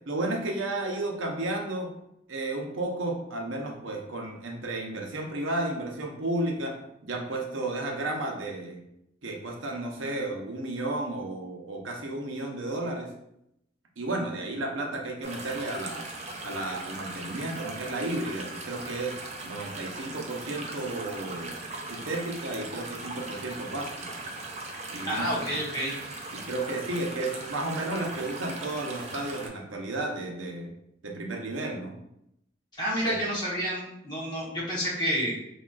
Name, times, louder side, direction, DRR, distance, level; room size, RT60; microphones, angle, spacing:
voice 1, 0.1-1.9 2.3-6.8 7.0-8.8 9.2-13.1 14.0-16.1 16.4-19.2 19.4-21.6 21.9-24.1 24.9-25.6 26.3-30.7 31.0-31.9 33.0-33.1, right 2 dB, 75° right, 1 dB, 0.7 m, -33 dB
sound 1, 15.2-29.5, right 2 dB, 35° right, 0.4 m, -39 dB
voice 2, 25.0-25.9 32.8-35.3, equal, 20° left, -6 dB, 1.0 m, -29 dB
4.0 x 3.0 x 2.4 m, 0.80 s
head